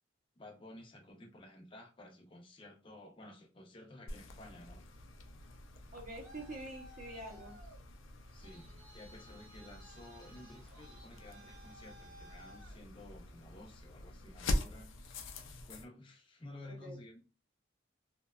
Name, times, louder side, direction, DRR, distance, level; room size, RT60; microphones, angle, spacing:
voice 1, 0.4-4.9 8.3-14.9 15.7-17.2, left 1 dB, 25° left, 0.5 m, -53 dB
sound 1, 4.1-15.8, left 1 dB, 80° left, 0.4 m, -44 dB
Traffic noise roadway noise, 5.8-13.5, equal, 80° right, 0.8 m, -58 dB
voice 2, 5.9-7.6 16.7-17.0, right 1 dB, 40° right, 0.6 m, -46 dB
2.7 x 2.1 x 2.3 m
head